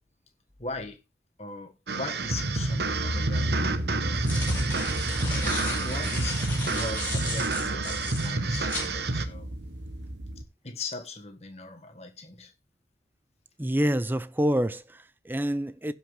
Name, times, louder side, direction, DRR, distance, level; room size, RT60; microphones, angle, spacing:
voice 1, 0.6-1.0 1.4-4.3 5.4-9.5 10.6-12.5, left 3 dB, 35° left, 1.6 m, -39 dB
sound 1, 1.9-9.2, right 3 dB, 70° right, 1.0 m, -30 dB
sound 2, 2.2-10.4, equal, 85° right, 1.2 m, -33 dB
sound 3, 2.9-3.0 3.9-8.9, left 2 dB, 10° left, 4.5 m, -35 dB
voice 2, 13.6-15.9, equal, 10° right, 0.4 m, -27 dB
16.5 x 5.9 x 3.3 m
head